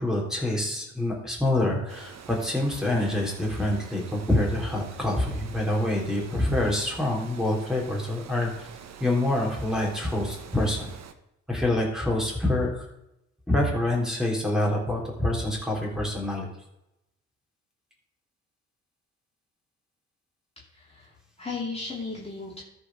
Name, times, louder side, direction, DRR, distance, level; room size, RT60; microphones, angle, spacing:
voice 1, 0.0-8.7 9.0-10.9 11.5-12.9 13.5-16.5, left 1 dB, ahead, -1 dB, 3.5 m, -26 dB
Water, 1.9-11.1, right 7 dB, 60° right, 1.1 m, -46 dB
voice 2, 20.7-22.6, left 4 dB, 20° left, -5 dB, 2.7 m, -36 dB
13.0 x 4.6 x 6.1 m, 0.86 s
cardioid pair, 90°, 30 cm